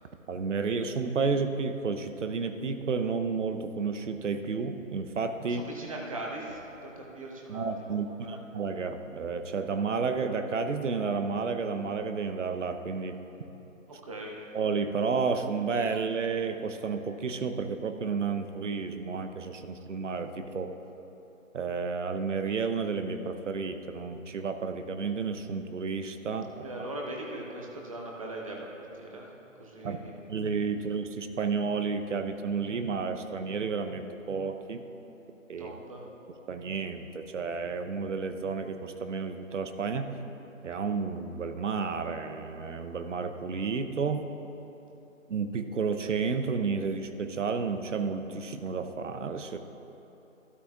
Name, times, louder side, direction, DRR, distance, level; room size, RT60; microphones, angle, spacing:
voice 1, 0.3-5.6 7.5-13.2 14.5-20.8 21.5-26.6 29.8-30.0 30.3-34.8 35.5-35.7 36.5-40.2 40.6-44.3 45.3-49.6, right 5 dB, 65° right, 8 dB, 0.8 m, -31 dB
voice 2, 5.4-8.4 13.9-14.4 26.6-29.3 29.6-30.1 35.6-36.0, right 1 dB, 25° right, -1 dB, 0.9 m, -40 dB
12.5 x 12.0 x 2.3 m, 3.0 s
hypercardioid pair, 165°, 40 cm